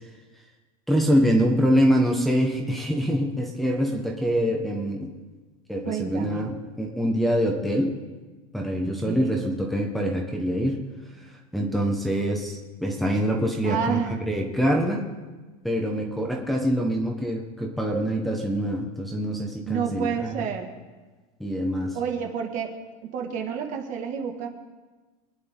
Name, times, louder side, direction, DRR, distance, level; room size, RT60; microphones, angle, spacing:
voice 1, 0.9-5.1 5.7-7.9 8.5-10.8 11.5-14.0 14.3-15.0 15.6-20.5 21.4-22.0, equal, ahead, -1 dB, 1.4 m, -25 dB
voice 2, 5.9-6.5 8.8-9.4 13.6-14.2 19.7-20.7 21.9-22.7 23.0-24.5, right 7 dB, 45° right, 3 dB, 1.8 m, -29 dB
25.0 x 9.9 x 3.7 m, 1.3 s
supercardioid pair, 150°, 18 cm